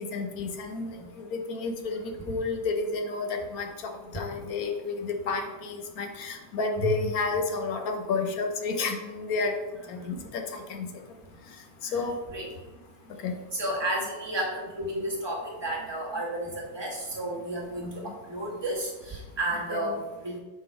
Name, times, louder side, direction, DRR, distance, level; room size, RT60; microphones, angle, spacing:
voice 1, 0.0-9.5 9.9-10.9 11.9-12.2 13.2-13.4 18.0-18.1 19.7-19.9, left 4 dB, 60° left, 4 dB, 1.0 m, -31 dB
voice 2, 9.9-10.2 11.9-12.0 12.3-12.5 13.5-20.4, right 1 dB, 15° right, -4 dB, 1.2 m, -32 dB
6.8 x 3.8 x 4.7 m, 1.2 s
omnidirectional pair, 2.2 m